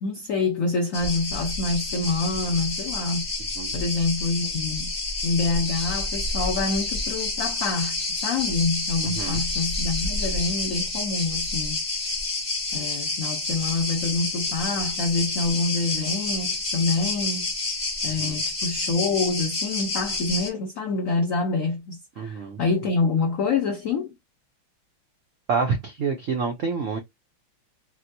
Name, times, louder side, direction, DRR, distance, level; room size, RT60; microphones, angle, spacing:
voice 1, 0.0-3.3 3.7-4.9 5.2-11.8 12.7-17.5 18.0-24.1, left 3 dB, 85° left, 0.7 m, -26 dB
sound 1, 0.9-20.5, left 2 dB, 25° left, 0.6 m, -29 dB
voice 2, 22.2-22.6 25.5-27.0, right 5 dB, 90° right, 0.6 m, -27 dB
4.2 x 2.1 x 2.6 m
omnidirectional pair, 2.3 m